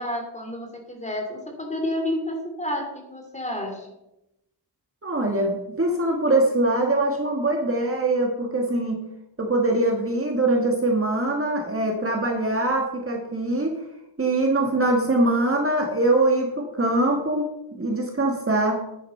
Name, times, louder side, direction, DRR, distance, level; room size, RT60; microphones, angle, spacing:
voice 1, 0.0-3.9, left 1 dB, 15° left, 1 dB, 2.8 m, -30 dB
voice 2, 5.0-9.0 9.4-13.8 14.2-18.8, right 2 dB, 30° right, 1 dB, 1.6 m, -23 dB
10.0 x 9.7 x 4.4 m, 0.88 s
wide cardioid pair, 125°, 43 cm